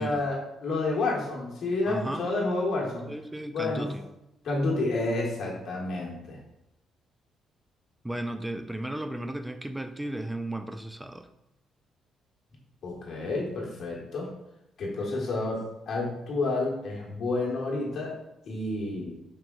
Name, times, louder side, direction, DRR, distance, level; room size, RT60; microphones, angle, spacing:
voice 1, 0.0-3.1 3.5-3.9 4.4-6.4 12.8-14.3 14.8-18.2 18.4-19.1, left 2 dB, 60° left, -2 dB, 1.3 m, -30 dB
voice 2, 1.9-2.3 3.1-4.1 8.0-11.3, right 1 dB, 10° right, 8 dB, 0.4 m, -35 dB
4.8 x 3.6 x 2.3 m, 0.85 s
cardioid pair, 90°, 0 cm